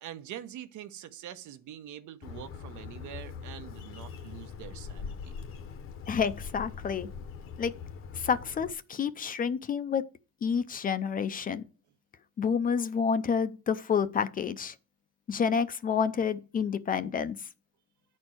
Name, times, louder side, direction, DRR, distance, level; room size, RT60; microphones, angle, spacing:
voice 1, 0.0-5.3, right 11 dB, 80° right, 1.1 m, -44 dB
Bird, 2.2-8.7, left 6 dB, 45° left, 0.9 m, -42 dB
voice 2, 6.1-7.1 7.6-7.7 8.2-10.0 10.4-11.6 12.4-14.7 15.3-17.4, left 6 dB, 30° left, 0.5 m, -29 dB
10.0 x 4.4 x 7.7 m
cardioid pair, 170°, 29 cm